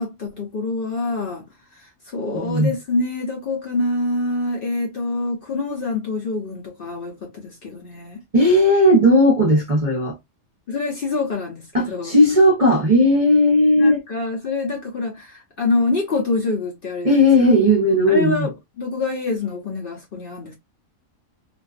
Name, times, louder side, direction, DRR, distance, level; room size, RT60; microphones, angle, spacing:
voice 1, 0.0-1.4 1.7-8.2 10.7-12.2 13.8-17.5 18.1-20.5, left 3 dB, 55° left, 0.7 m, -26 dB
voice 2, 8.3-10.1 11.7-14.0 17.0-18.5, left 1 dB, 35° right, 0.6 m, -16 dB
2.5 x 2.2 x 2.3 m
omnidirectional pair, 1.4 m